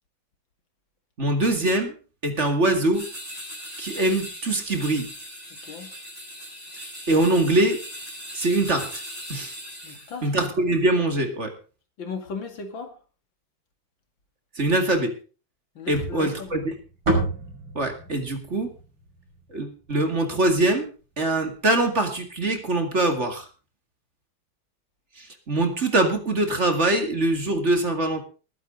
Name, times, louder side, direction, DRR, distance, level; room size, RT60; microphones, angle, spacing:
voice 1, 1.2-1.9 2.2-3.1 3.8-5.1 7.1-7.8 8.3-9.0 9.3-9.5 10.2-11.5 14.6-15.1 15.9-16.7 17.7-18.7 19.5-20.9 21.2-23.5 25.2-28.2, right 2 dB, 35° right, 5 dB, 2.4 m, -23 dB
sound 1, 2.9-10.2, equal, 15° right, 6.9 m, -39 dB
voice 2, 9.8-10.3 12.0-12.9 15.8-16.7, left 5 dB, 65° left, 6 dB, 2.9 m, -36 dB
sound 2, 15.9-20.2, right 2 dB, 60° right, 6.7 m, -30 dB
20.0 x 10.0 x 3.9 m, 0.37 s
omnidirectional pair, 2.3 m